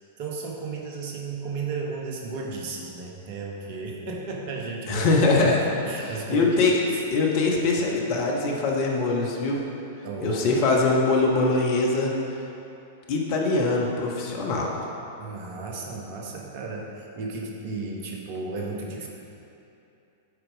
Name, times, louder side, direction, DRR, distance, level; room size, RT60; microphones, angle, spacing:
voice 1, 0.2-5.1 5.4-5.5 5.8-6.6 6.9-7.0 10.0-10.4 15.2-19.1, right 3 dB, 50° right, -1 dB, 1.1 m, -34 dB
voice 2, 4.9-5.6 6.0-6.8 7.1-9.6 10.2-12.1 13.1-14.9, left 3 dB, 45° left, -1 dB, 1.2 m, -23 dB
8.2 x 4.7 x 5.1 m, 2.8 s
figure-of-eight pair, 95°, 0 cm